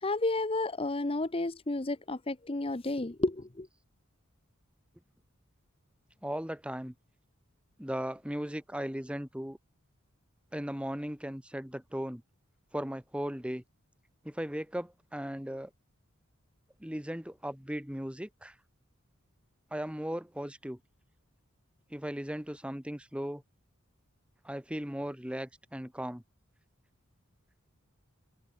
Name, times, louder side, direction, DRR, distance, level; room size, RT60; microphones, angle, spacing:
voice 1, 0.0-3.7, left 2 dB, 25° left, 0.8 m, -31 dB
voice 2, 6.2-6.9 7.8-9.6 10.5-12.2 12.7-13.6 14.2-15.7 16.8-18.5 19.7-20.8 21.9-23.4 24.4-26.2, equal, 5° right, 1.4 m, -37 dB
head